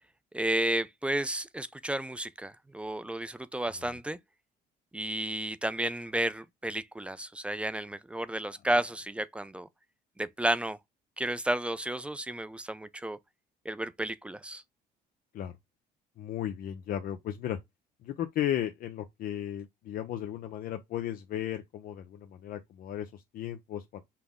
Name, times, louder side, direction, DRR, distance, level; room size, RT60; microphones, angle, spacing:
voice 1, 0.3-4.2 4.9-9.7 10.2-10.8 11.2-13.2 13.7-14.6, right 1 dB, 5° right, 0.4 m, -32 dB
voice 2, 16.2-17.6 18.0-24.0, left 11 dB, 60° left, 0.6 m, -35 dB
5.8 x 2.0 x 3.5 m
cardioid pair, 110°, 17 cm